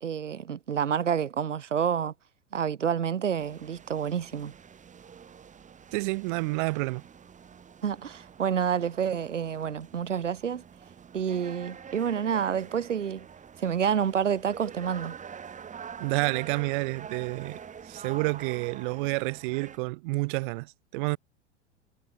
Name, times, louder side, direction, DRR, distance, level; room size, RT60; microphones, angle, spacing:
voice 1, 0.0-2.1 2.5-4.5 7.8-10.6 11.1-13.3 13.6-15.2, right 8 dB, 85° right, 0.6 m, -28 dB
sound 1, 3.4-19.8, right 7 dB, 20° right, 3.6 m, -46 dB
voice 2, 5.9-7.0 16.0-17.6 17.9-21.2, right 26 dB, 45° right, 0.7 m, -29 dB
figure-of-eight pair, 90°, 36 cm